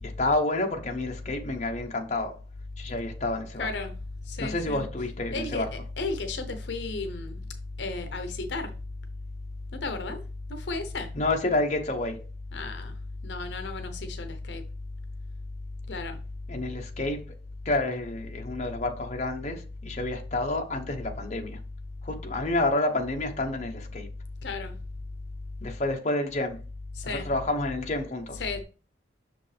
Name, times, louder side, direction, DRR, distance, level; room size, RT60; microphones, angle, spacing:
voice 1, 0.0-2.4 2.8-3.7 4.4-5.7 11.1-12.2 16.5-17.2 17.6-21.6 22.0-24.1 25.6-26.6 27.0-28.4, left 2 dB, 35° left, 0.9 m, -29 dB
voice 2, 3.6-3.9 4.3-4.8 5.3-7.4 7.8-8.7 9.7-10.2 10.5-11.1 12.5-12.9 13.2-14.6 15.9-16.2 24.4-24.7 26.9-27.3 28.3-28.6, left 3 dB, 70° left, 0.7 m, -33 dB
6.4 x 5.2 x 3.3 m
head